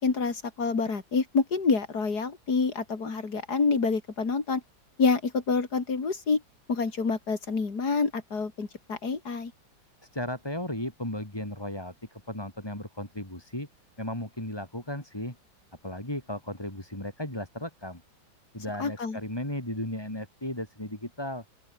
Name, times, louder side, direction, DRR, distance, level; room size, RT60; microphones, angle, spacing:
voice 1, 0.0-4.6 5.0-6.4 6.7-9.5 18.8-19.2, left 4 dB, 55° left, 3.7 m, -27 dB
voice 2, 10.0-13.7 14.0-15.4 15.8-18.0 18.5-21.4, left 1 dB, 10° left, 4.2 m, -35 dB
open air
omnidirectional pair, 2.0 m